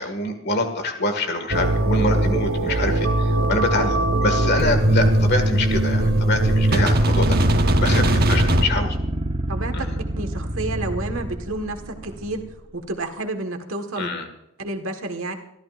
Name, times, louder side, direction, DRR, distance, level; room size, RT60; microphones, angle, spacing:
voice 1, 0.0-9.0 9.7-10.0 14.0-14.3, left 2 dB, 50° left, 6 dB, 2.0 m, -25 dB
sound 1, 1.5-8.6, right 1 dB, 45° right, 1.2 m, -19 dB
sound 2, 6.4-12.6, right 1 dB, 30° right, 0.9 m, -29 dB
voice 2, 9.5-9.9 10.2-12.4 12.7-14.1 14.6-15.3, right 2 dB, 70° right, 5 dB, 1.6 m, -30 dB
26.5 x 13.5 x 2.6 m, 0.84 s
head